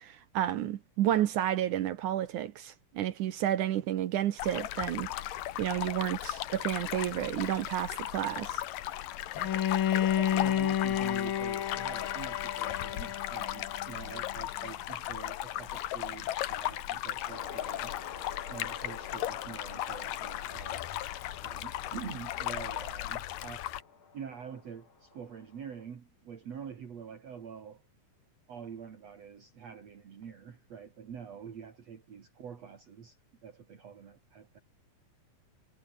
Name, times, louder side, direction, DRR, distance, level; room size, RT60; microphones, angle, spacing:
voice 1, 0.0-5.1 5.6-8.6, right 12 dB, 70° right, 2.5 m, -31 dB
sound 1, 4.4-23.8, left 14 dB, 80° left, 2.8 m, -37 dB
Bowed string instrument, 9.3-14.3, left 10 dB, 60° left, 1.3 m, -31 dB
voice 2, 9.4-17.9 18.5-21.0 21.4-23.7 24.1-27.8 28.5-34.6, right 7 dB, 50° right, 3.4 m, -46 dB
sound 2, 17.3-25.8, left 5 dB, 40° left, 3.2 m, -49 dB
omnidirectional pair, 3.9 m